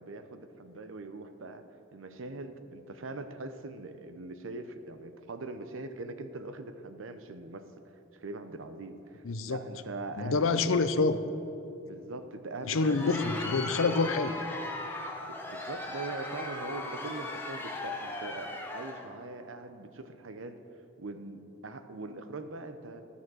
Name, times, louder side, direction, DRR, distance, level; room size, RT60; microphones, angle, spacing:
voice 1, 0.0-1.6 1.9-7.7 8.1-10.9 11.8-13.6 15.3-20.6 21.0-23.0, right 2 dB, 80° right, 9 dB, 0.7 m, -42 dB
voice 2, 9.2-9.6 10.2-11.2 12.7-14.4, left 4 dB, 90° left, 11 dB, 0.6 m, -27 dB
Crowd, 12.6-19.1, left 2 dB, 10° left, 1.0 m, -38 dB
12.0 x 7.1 x 6.2 m, 2.9 s
head